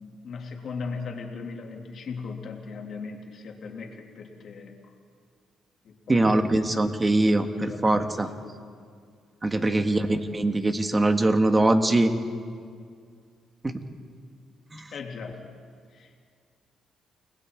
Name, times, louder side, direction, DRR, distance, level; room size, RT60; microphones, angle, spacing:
voice 1, 0.0-4.9 5.8-7.1 7.4-8.1 9.6-9.9 14.9-15.4 15.9-16.2, left 4 dB, 60° left, 1 dB, 3.0 m, -38 dB
voice 2, 6.1-8.3 9.4-12.1 13.6-13.8 14.7-14.9, right 2 dB, 20° right, 7 dB, 1.7 m, -22 dB
29.5 x 20.0 x 4.7 m, 2.2 s
cardioid pair, 90°, 0 cm